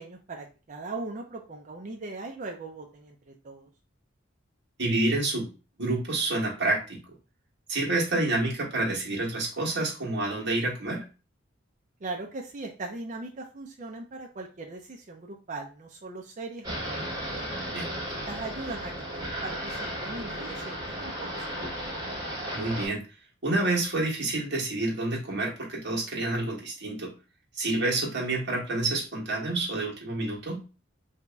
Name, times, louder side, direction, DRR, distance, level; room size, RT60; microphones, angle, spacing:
voice 1, 0.0-3.7 12.0-17.4 18.3-22.0, right 3 dB, 40° right, 1 dB, 0.5 m, -40 dB
voice 2, 4.8-5.5 5.8-7.0 7.7-11.0 17.7-17.9 22.5-23.0 23.4-27.1 27.6-30.6, right 2 dB, 60° right, -3 dB, 1.3 m, -28 dB
sound 1, 16.6-22.9, equal, 20° right, 1.7 m, -35 dB
2.9 x 2.8 x 3.3 m, 0.33 s
head